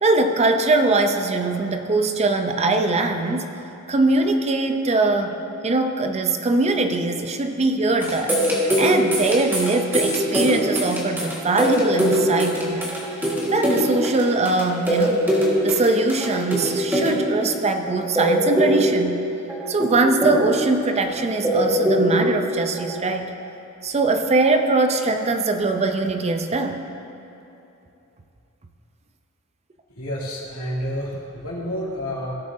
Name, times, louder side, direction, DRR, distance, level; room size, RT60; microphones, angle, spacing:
voice 1, 0.0-3.5 3.9-5.4 5.6-12.9 13.5-15.3 15.6-19.2 19.7-23.3 23.8-26.8, right 3 dB, 30° right, 6 dB, 0.5 m, -21 dB
sound 1, 8.0-17.6 17.8-19.2 19.5-20.8 21.1-22.5 22.8-23.0, equal, 10° right, 1.6 m, -22 dB
voice 2, 30.0-32.3, equal, 90° left, -5 dB, 2.4 m, -29 dB
17.0 x 7.1 x 2.6 m, 2.9 s
head